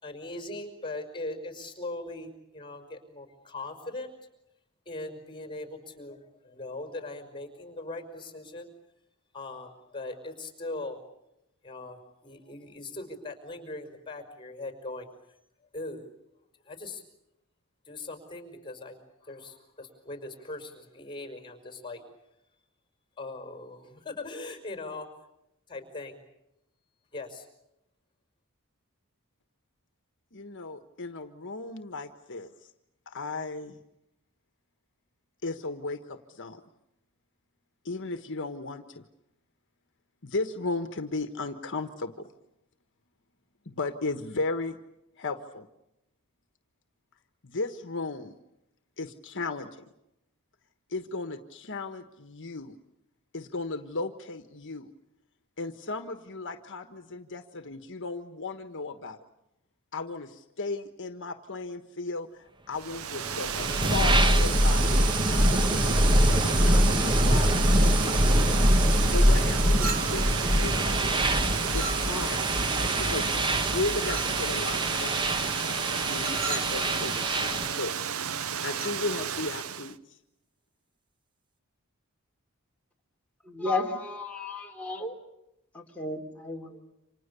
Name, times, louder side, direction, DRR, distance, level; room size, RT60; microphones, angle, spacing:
voice 1, 0.0-4.1 4.9-8.7 9.3-11.0 11.6-15.1 15.7-16.1 16.7-17.0 17.9-19.0 19.2-22.0 23.2-25.1 25.7-26.2 27.1-27.5, left 2 dB, 20° left, 7 dB, 5.4 m, -40 dB
voice 2, 30.3-32.7 33.1-33.8 35.4-36.6 37.8-39.0 40.2-42.3 43.6-44.8 45.2-45.7 47.4-48.4 49.0-49.9 50.9-52.7 53.3-54.9 55.6-59.2 59.9-64.8 65.3-68.2 69.1-71.0 71.7-72.4 73.0-75.3 76.1-78.1 78.6-80.2, left 3 dB, 60° left, 8 dB, 1.4 m, -35 dB
Water, 62.7-80.0, right 7 dB, 75° right, 1.0 m, -33 dB
sound 1, 63.2-77.8, equal, 20° right, 1.3 m, -24 dB
Chink clink, 69.8-70.4 71.7-72.4 74.1-74.5 76.2-76.8 78.7-79.0, right 3 dB, 45° right, 2.3 m, -36 dB
voice 3, 83.5-85.1 85.7-86.7, left 2 dB, 5° left, -1 dB, 3.5 m, -33 dB
29.5 x 26.5 x 6.9 m, 0.87 s
head